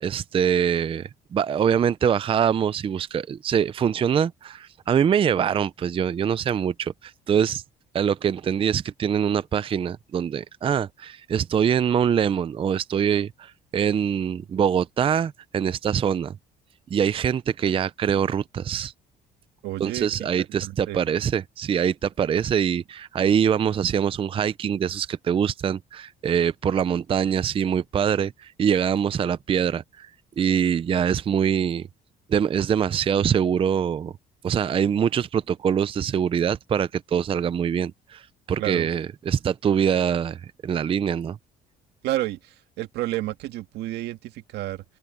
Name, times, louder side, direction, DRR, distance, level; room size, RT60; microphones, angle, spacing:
voice 1, 0.0-7.6 7.9-16.3 16.9-18.9 19.8-30.1 30.4-31.9 32.3-34.1 34.4-41.4, right 8 dB, 30° right, 0.5 m, -24 dB
voice 2, 19.6-21.0 38.6-38.9 42.0-44.8, right 16 dB, 80° right, 1.8 m, -31 dB
open air
cardioid pair, 110°, 17 cm